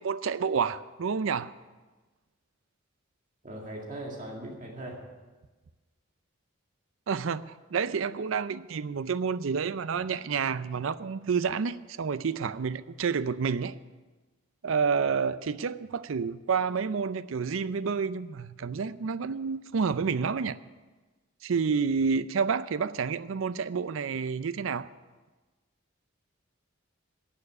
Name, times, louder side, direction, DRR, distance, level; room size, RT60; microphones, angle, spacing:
voice 1, 0.0-1.5 7.1-13.7 14.6-20.6 21.4-24.9, right 5 dB, 75° right, 16 dB, 0.5 m, -29 dB
voice 2, 3.4-5.0, right 1 dB, 40° right, 0 dB, 2.0 m, -39 dB
11.5 x 7.1 x 9.7 m, 1.3 s
head